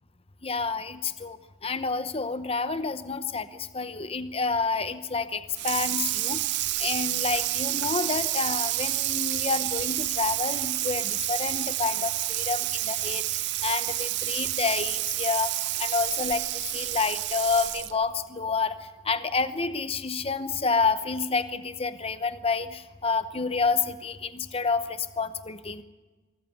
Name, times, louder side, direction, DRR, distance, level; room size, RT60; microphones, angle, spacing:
voice 1, 0.4-6.4 6.8-25.8, left 4 dB, 25° left, 12 dB, 0.8 m, -29 dB
Water tap faucet / Sink (filling or washing), 5.6-18.1, right 15 dB, 50° right, 0.6 m, -29 dB
24.0 x 14.0 x 9.2 m, 1.3 s
head